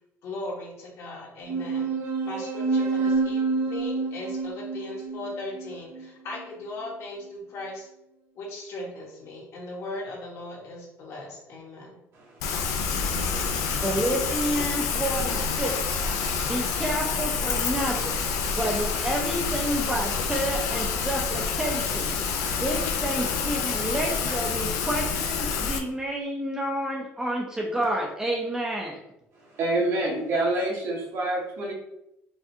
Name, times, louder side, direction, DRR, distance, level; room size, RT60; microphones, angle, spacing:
voice 1, 0.2-7.9 8.3-12.0, left 2 dB, 60° left, -2 dB, 1.2 m, -38 dB
sound 1, 1.5-6.4, right 4 dB, 75° right, 0.7 m, -28 dB
voice 2, 12.1-13.2 29.3-31.7, right 2 dB, 60° right, -2 dB, 1.1 m, -28 dB
Rain, 12.4-25.8, left 5 dB, 85° left, 0.5 m, -28 dB
voice 3, 13.8-16.0 16.4-18.2 18.6-22.1 22.6-29.0, right 1 dB, 10° right, -2 dB, 0.5 m, -29 dB
4.8 x 2.4 x 2.7 m, 0.84 s
cardioid pair, 135°, 5 cm